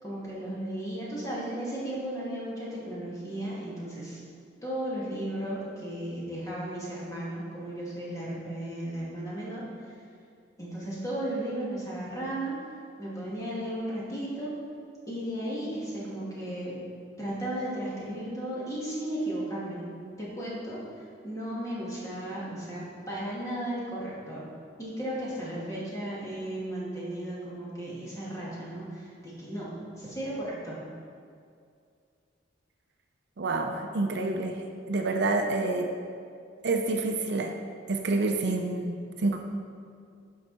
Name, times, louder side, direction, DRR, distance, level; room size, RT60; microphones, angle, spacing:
voice 1, 0.0-4.2 4.6-9.9 10.6-12.5 13.0-14.5 15.1-16.8 17.2-19.9 20.2-24.4 24.8-29.7 30.0-30.8, right 1 dB, 15° left, -7 dB, 2.1 m, -35 dB
voice 2, 33.4-35.9 36.6-37.5 37.9-39.5, right 2 dB, 60° right, 4 dB, 0.6 m, -28 dB
11.5 x 4.7 x 4.1 m, 2.3 s
head